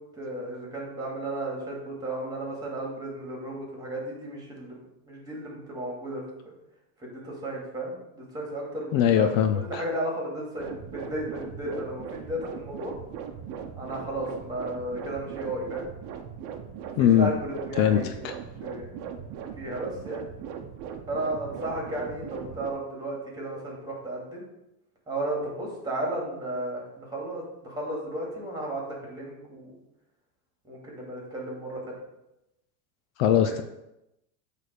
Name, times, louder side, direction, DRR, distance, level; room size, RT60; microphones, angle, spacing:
voice 1, 0.1-4.8 5.1-6.2 7.0-12.9 13.8-15.9 17.0-18.2 18.6-18.9 19.6-20.2 21.1-24.5 25.1-29.8 30.6-32.0, right 1 dB, 10° right, -2 dB, 2.6 m, -34 dB
voice 2, 8.9-9.8 17.0-17.3 17.8-18.3 33.2-33.6, left 10 dB, 60° left, 8 dB, 0.7 m, -21 dB
sound 1, 10.6-22.7, right 7 dB, 40° right, 0.9 m, -39 dB
8.4 x 3.6 x 6.6 m, 0.90 s
supercardioid pair, 145°, 45 cm